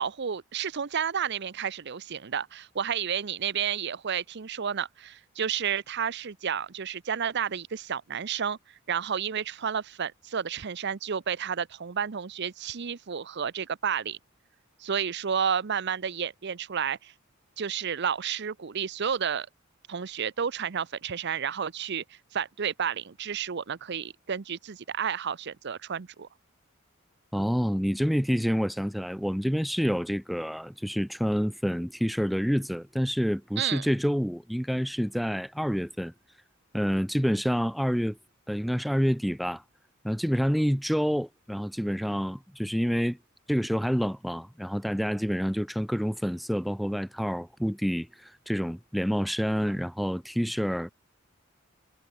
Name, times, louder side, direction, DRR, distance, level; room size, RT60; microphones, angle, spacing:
voice 1, 0.0-8.6 8.9-14.2 14.8-17.1 17.6-19.5 19.9-22.0 22.3-26.3 33.6-33.9, right 7 dB, 55° right, 0.7 m, -31 dB
voice 2, 27.3-36.1 36.7-38.2 38.5-39.6 40.0-43.2 43.5-50.9, equal, ahead, 0.3 m, -28 dB
head